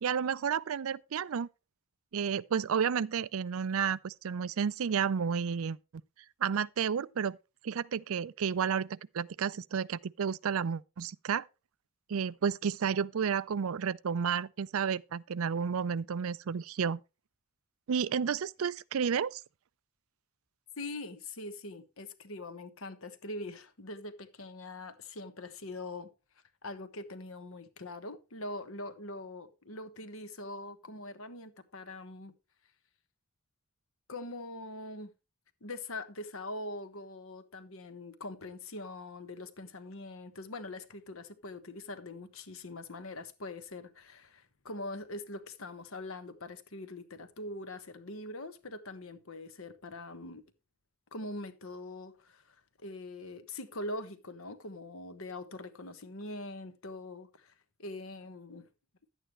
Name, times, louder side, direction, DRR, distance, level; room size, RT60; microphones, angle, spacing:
voice 1, 0.0-1.5 2.1-5.8 6.4-7.4 7.6-11.5 12.1-17.0 17.9-19.4, right 7 dB, 70° right, 0.4 m, -31 dB
voice 2, 20.8-26.1 26.6-32.3 34.1-35.1 35.6-50.4 51.1-52.5 52.8-57.5 57.8-58.7, left 2 dB, 70° left, 1.3 m, -43 dB
11.0 x 8.9 x 3.2 m
head